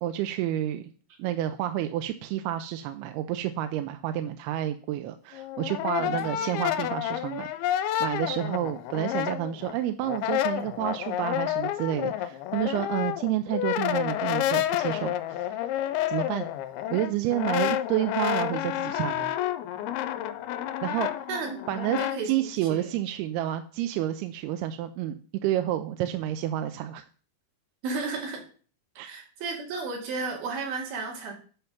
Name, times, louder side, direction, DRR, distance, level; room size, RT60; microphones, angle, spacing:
voice 1, 0.0-0.9 1.2-7.7 8.0-15.7 16.1-16.5 16.9-19.4 20.8-21.3 21.7-22.0 22.2-27.0 29.0-29.1, right 12 dB, 90° right, 8 dB, 2.6 m, -30 dB
Brass instrument, 5.3-9.7 10.0-22.2, left 12 dB, 85° left, 2.5 m, -29 dB
voice 2, 6.0-6.5 21.3-22.9 27.8-28.4 29.0-31.3, right 4 dB, 70° right, 0 dB, 3.9 m, -34 dB
8.5 x 5.8 x 5.9 m, 0.42 s
omnidirectional pair, 4.5 m